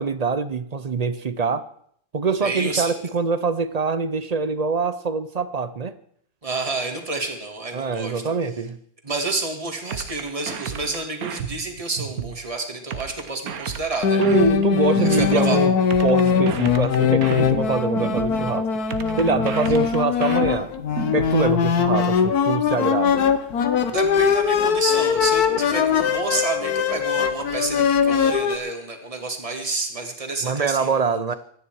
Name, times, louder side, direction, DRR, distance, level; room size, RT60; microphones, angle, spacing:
voice 1, 0.0-1.6 2.1-5.9 7.7-8.8 14.2-15.7 16.0-18.7 19.2-20.7 21.1-23.2 30.4-31.3, right 4 dB, 40° right, 13 dB, 0.6 m, -24 dB
voice 2, 2.4-2.9 6.4-8.2 9.0-14.2 14.8-15.6 23.9-31.2, right 3 dB, 20° right, 4 dB, 2.1 m, -29 dB
sound 1, 9.9-12.4 12.9-15.4 15.9-18.4 18.9-21.4, right 7 dB, 65° right, 1.5 m, -32 dB
sound 2, 14.0-28.6, left 7 dB, 75° left, 1.6 m, -21 dB
24.5 x 10.0 x 4.7 m, 0.64 s
omnidirectional pair, 1.7 m